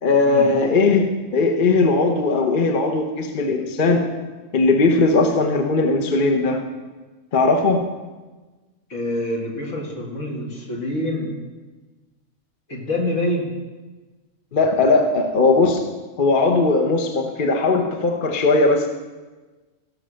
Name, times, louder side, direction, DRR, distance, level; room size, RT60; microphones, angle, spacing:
voice 1, 0.0-1.0 1.3-4.1 4.5-6.6 7.3-7.8 14.5-15.8 16.2-18.9, left 3 dB, 45° left, 3 dB, 1.0 m, -18 dB
voice 2, 8.9-11.3 12.7-13.5, left 1 dB, 75° left, -1 dB, 2.4 m, -26 dB
16.5 x 5.7 x 6.3 m, 1.3 s
omnidirectional pair, 1.3 m